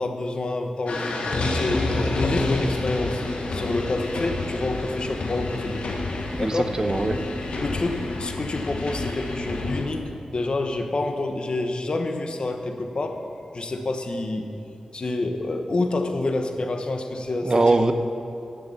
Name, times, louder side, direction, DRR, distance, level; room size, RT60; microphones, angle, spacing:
voice 1, 0.0-3.2 3.5-6.0 6.4-6.8 7.6-13.2 13.5-14.5 14.9-17.9, left 2 dB, 55° left, 5 dB, 0.9 m, -28 dB
sound 1, 0.9-9.8, left 2 dB, 85° left, 1.1 m, -28 dB
voice 2, 6.4-7.2 17.4-17.9, right 2 dB, 35° right, 9 dB, 0.7 m, -21 dB
10.0 x 6.6 x 7.0 m, 2.8 s
wide cardioid pair, 65°, 2 cm